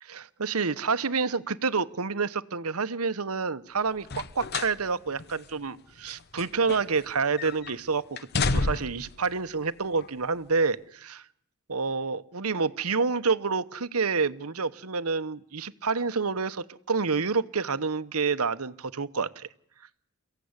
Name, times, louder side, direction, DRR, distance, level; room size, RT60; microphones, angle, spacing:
voice 1, 0.0-11.2 11.7-19.5, right 4 dB, 85° right, 13 dB, 1.1 m, -28 dB
sound 1, 4.0-4.8 5.2-5.3 6.1-7.1 7.4-7.7 8.2-9.1 10.0-10.1, left 3 dB, 50° left, 1.0 m, -30 dB
29.5 x 16.0 x 9.7 m, 0.71 s
head